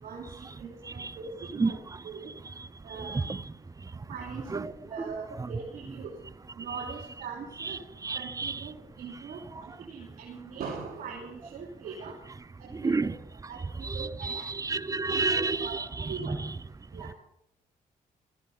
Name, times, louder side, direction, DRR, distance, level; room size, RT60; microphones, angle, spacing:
voice 1, 0.0-1.8 2.0-2.3 2.8-3.2 4.1-6.1 6.6-7.8 8.1-12.2 12.6-13.1 13.5-13.6 13.9-14.5 15.1-16.4 16.9-17.1, right 5 dB, 75° right, 3.0 m, -41 dB
voice 2, 3.0-3.4 4.5-4.7 5.1-5.2 5.4-5.5 7.6-8.7 12.7-13.1 13.8-16.5, right 3 dB, 25° right, 0.7 m, -30 dB
17.0 x 14.5 x 5.5 m
cardioid pair, 75°, 15 cm